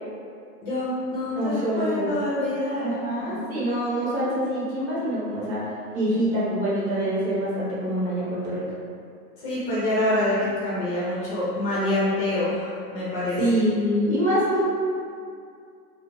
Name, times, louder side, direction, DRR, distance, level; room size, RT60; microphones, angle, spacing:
voice 1, 0.6-3.4 4.2-4.4 9.4-13.4, left 1 dB, 30° left, -9 dB, 0.8 m, -26 dB
voice 2, 1.3-2.2 2.8-5.7 5.9-8.6 13.4-14.6, equal, 45° right, -8 dB, 0.9 m, -25 dB
2.4 x 2.1 x 3.1 m, 2.3 s
hypercardioid pair, 135°, 48 cm